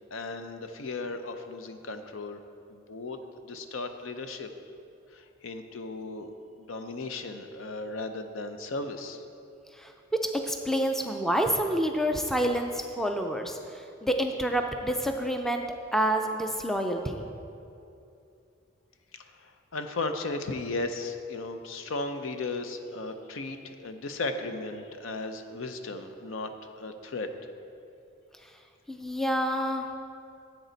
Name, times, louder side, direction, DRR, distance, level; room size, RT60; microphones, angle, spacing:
voice 1, 0.1-2.4 2.7-3.2 3.4-4.5 5.1-6.3 6.6-9.2 19.1-19.2 19.7-26.5 26.8-27.3, left 3 dB, 75° left, 7 dB, 0.6 m, -35 dB
voice 2, 9.8-15.6 15.9-17.2 28.9-29.9, equal, ahead, 4 dB, 0.4 m, -28 dB
10.5 x 7.9 x 4.0 m, 2.6 s
head